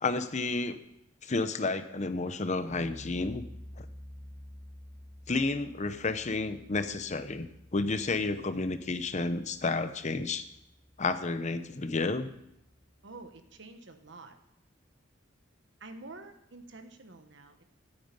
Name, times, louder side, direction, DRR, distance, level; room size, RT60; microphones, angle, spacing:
voice 1, 0.0-0.8 1.2-3.4 3.8-3.9 5.3-10.4 11.0-12.3, left 3 dB, 40° left, 11 dB, 0.8 m, -31 dB
sound 1, 2.7-13.6, left 1 dB, 20° right, 1.1 m, -51 dB
voice 2, 13.0-14.3 15.8-17.6, right 2 dB, 70° right, 7 dB, 1.4 m, -48 dB
9.4 x 8.9 x 8.9 m, 0.81 s
head